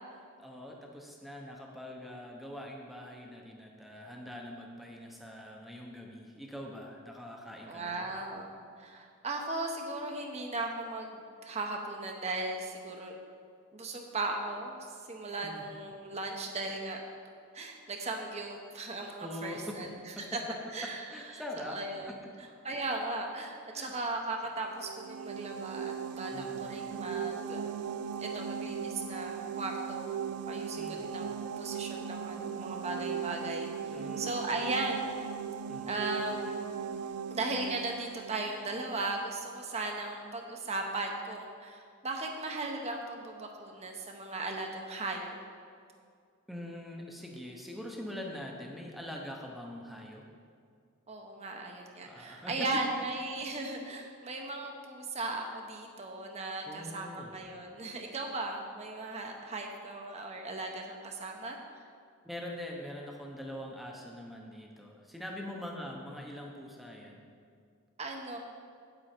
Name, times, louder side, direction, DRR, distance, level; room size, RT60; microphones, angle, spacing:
voice 1, 0.4-8.1 15.4-15.6 19.2-19.8 20.2-20.3 21.1-21.8 22.1-22.2 23.7-23.9 26.3-26.7 30.8-31.2 33.9-34.5 35.7-36.0 46.5-50.2 52.0-52.7 56.7-57.3 62.2-67.2, left 1 dB, ahead, 0 dB, 0.8 m, -43 dB
voice 2, 7.6-13.1 13.7-14.8 15.1-17.0 17.5-19.9 20.3-20.4 20.7-21.0 21.6-27.7 28.2-30.2 30.5-35.1 35.9-36.6 37.3-45.4 51.1-61.6 68.0-68.4, right 2 dB, 30° right, 2 dB, 0.8 m, -37 dB
sound 1, 24.6-39.3, right 7 dB, 80° right, 0.4 m, -38 dB
9.1 x 7.9 x 4.4 m, 2.2 s
head